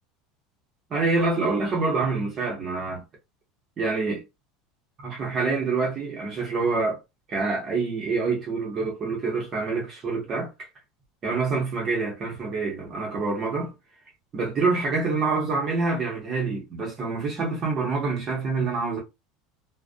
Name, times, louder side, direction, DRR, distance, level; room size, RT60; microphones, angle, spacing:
voice 1, 0.9-3.0 3.8-4.2 5.0-7.0 7.3-10.7 11.2-13.7 14.3-19.0, right 4 dB, 25° right, 0.7 m, -26 dB
2.4 x 2.0 x 2.5 m
cardioid pair, 165°, 0 cm